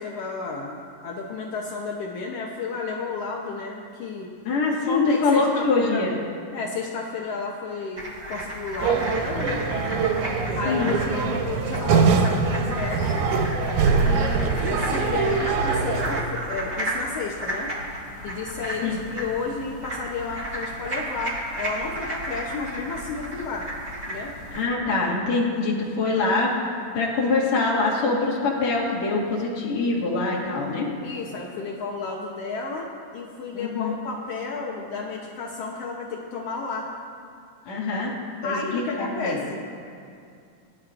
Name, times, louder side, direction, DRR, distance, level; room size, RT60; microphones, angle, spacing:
voice 1, 0.0-4.3 4.9-6.1 6.5-10.0 10.5-13.3 13.9-17.7 18.2-23.7 24.1-24.3 31.0-32.9 33.1-36.9 38.4-39.7, left 4 dB, 80° left, -1 dB, 1.3 m, -32 dB
voice 2, 4.4-6.2 10.4-11.0 18.8-19.0 24.5-26.5 26.9-30.9 33.5-33.9 37.7-38.1 38.4-39.4, left 3 dB, 55° left, -4 dB, 2.9 m, -24 dB
sound 1, 8.0-24.6, right 1 dB, 30° right, 1.0 m, -34 dB
sound 2, 8.8-16.2, right 5 dB, 75° right, 1.9 m, -23 dB
21.5 x 11.0 x 2.5 m, 2.4 s
omnidirectional pair, 4.0 m